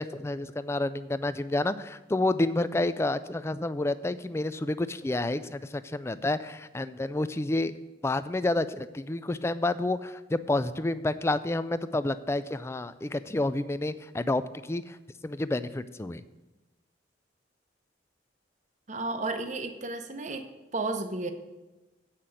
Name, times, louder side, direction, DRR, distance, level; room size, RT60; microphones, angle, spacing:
voice 1, 0.0-7.7 8.0-15.0 15.2-16.2, left 2 dB, 15° left, 14 dB, 0.3 m, -29 dB
voice 2, 18.9-20.5 20.7-21.3, right 3 dB, 40° right, 7 dB, 0.8 m, -32 dB
8.3 x 5.8 x 7.5 m, 1.1 s
head